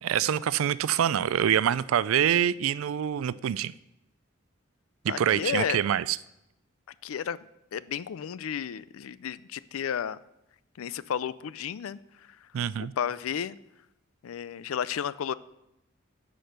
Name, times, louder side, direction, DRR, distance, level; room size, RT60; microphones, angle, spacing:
voice 1, 0.0-3.7 5.0-6.2 12.5-12.9, right 9 dB, 80° right, 18 dB, 0.3 m, -25 dB
voice 2, 5.1-5.8 7.0-7.4 7.7-10.2 10.8-12.4 12.8-13.6 14.2-15.3, left 8 dB, 90° left, 17 dB, 0.4 m, -32 dB
10.0 x 5.2 x 6.6 m, 0.87 s
head